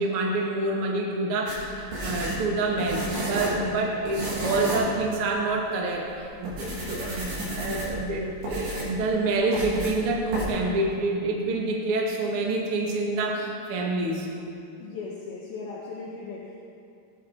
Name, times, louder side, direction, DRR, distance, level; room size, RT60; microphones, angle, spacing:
voice 1, 0.0-14.3, right 2 dB, 75° right, -2 dB, 1.3 m, -27 dB
sound 1, 1.5-3.7 4.1-4.9 5.3-5.4 6.0-6.1 6.4-8.1 8.4-9.0 9.5-10.0 10.3-10.4, right 1 dB, 55° right, 4.8 m, -31 dB
voice 2, 14.8-16.5, left 4 dB, 70° left, -3 dB, 2.4 m, -37 dB
18.5 x 11.0 x 4.6 m, 2.5 s
omnidirectional pair, 5.7 m